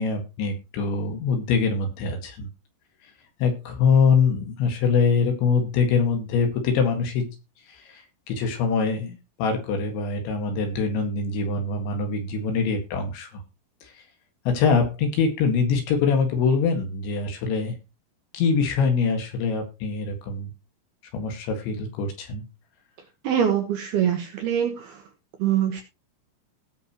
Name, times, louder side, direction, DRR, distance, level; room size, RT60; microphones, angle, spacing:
voice 1, 0.0-2.5 3.4-7.4 8.3-13.3 14.5-17.8 18.3-20.5 21.1-22.5, left 5 dB, 65° left, 4 dB, 3.9 m, -23 dB
voice 2, 23.2-25.0 25.4-25.8, right 9 dB, 70° right, 4 dB, 2.6 m, -24 dB
18.0 x 6.7 x 3.0 m, 0.27 s
omnidirectional pair, 5.9 m